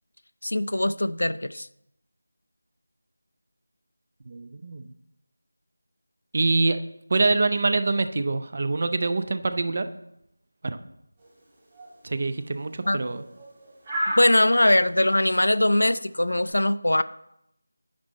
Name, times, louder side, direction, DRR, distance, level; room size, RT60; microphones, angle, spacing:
voice 1, 0.4-1.7 12.9-13.0 14.2-17.0, left 1 dB, 85° left, 14 dB, 0.4 m, -21 dB
voice 2, 4.3-4.9 6.3-6.8 7.1-9.9 10.6-10.8 12.0-13.2, right 3 dB, 40° right, 10 dB, 0.5 m, -25 dB
sound 1, 11.2-16.5, equal, 20° right, 2.0 m, -35 dB
9.5 x 5.2 x 4.1 m, 0.81 s
figure-of-eight pair, 170°, 0 cm